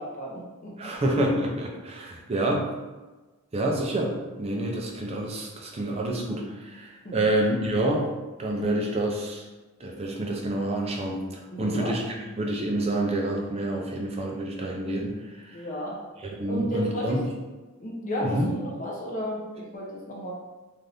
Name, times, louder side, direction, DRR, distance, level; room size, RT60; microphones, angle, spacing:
voice 1, 0.0-0.9 7.0-7.3 11.5-11.9 15.5-16.0 16.5-17.4 17.8-20.3, equal, 35° left, -3 dB, 0.6 m, -33 dB
voice 2, 0.8-2.7 3.5-8.1 8.4-9.4 9.8-12.0 12.4-15.6 16.2-17.2 18.2-18.6, right 1 dB, 25° right, 0 dB, 0.4 m, -28 dB
2.6 x 2.4 x 3.3 m, 1.2 s
head